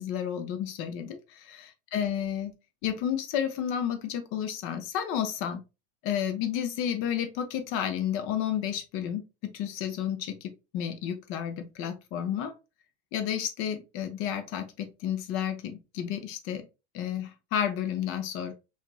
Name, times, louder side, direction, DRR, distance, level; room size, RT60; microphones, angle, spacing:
voice 1, 0.0-2.5 2.8-5.6 6.0-12.5 13.1-16.7 16.9-18.5, left 9 dB, 45° left, 0.5 m, -31 dB
2.9 x 2.4 x 2.2 m
supercardioid pair, 145°, 31 cm